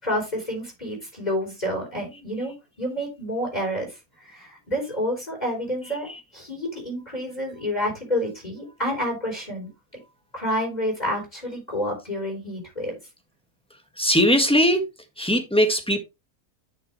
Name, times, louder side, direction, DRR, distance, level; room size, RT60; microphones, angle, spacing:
voice 1, 0.0-9.7 10.3-13.0, equal, 25° left, 0 dB, 4.0 m, -29 dB
voice 2, 14.0-14.8 15.2-16.0, equal, 5° left, 5 dB, 1.5 m, -19 dB
10.5 x 6.0 x 3.2 m, 0.23 s
omnidirectional pair, 1.6 m